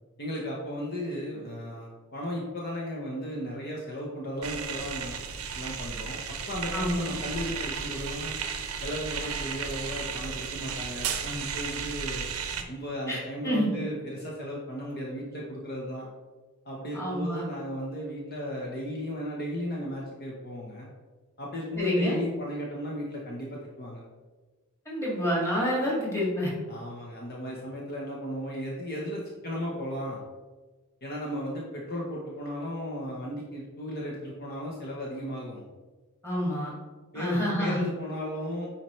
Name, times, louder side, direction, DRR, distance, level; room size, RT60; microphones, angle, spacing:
voice 1, 0.2-5.2 5.5-8.4 8.8-12.3 12.7-16.1 16.6-20.9 21.4-24.0 26.7-30.2 31.0-35.6 37.1-38.7, equal, 45° left, -3 dB, 1.0 m, -35 dB
sound 1, 4.4-12.6, right 6 dB, 80° right, 0.7 m, -34 dB
voice 2, 6.7-7.2 13.1-13.2 13.4-13.8 16.9-17.4 21.8-22.2 24.9-26.5 36.2-36.7 37.1-37.9, equal, 15° left, -5 dB, 2.2 m, -28 dB
9.6 x 4.3 x 3.2 m, 1.3 s
head